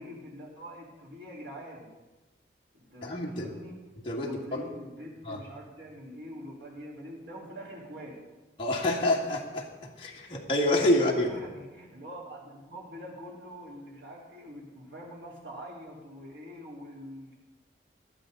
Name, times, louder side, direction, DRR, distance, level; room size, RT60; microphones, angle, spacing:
voice 1, 0.0-1.9 2.7-3.8 4.1-8.2 10.9-17.3, equal, 85° right, -4 dB, 4.4 m, -44 dB
voice 2, 3.0-3.5 4.0-4.7 5.2-5.4 8.6-11.3, left 1 dB, 30° left, -3 dB, 2.0 m, -27 dB
18.0 x 12.5 x 4.1 m, 1.1 s
head